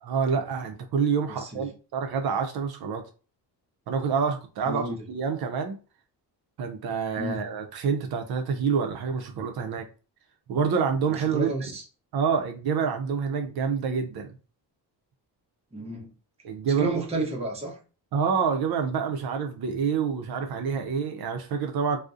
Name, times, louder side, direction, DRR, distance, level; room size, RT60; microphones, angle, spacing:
voice 1, 0.0-3.0 3.9-5.8 6.6-9.9 10.5-11.5 12.1-14.4 16.4-17.0 18.1-22.0, right 6 dB, 65° right, 0.5 m, -27 dB
voice 2, 1.3-1.7 4.7-5.1 7.2-7.5 11.1-11.8 15.7-16.1 16.7-17.8, right 2 dB, 15° right, 0.5 m, -31 dB
2.5 x 2.0 x 2.3 m
wide cardioid pair, 150°, 41 cm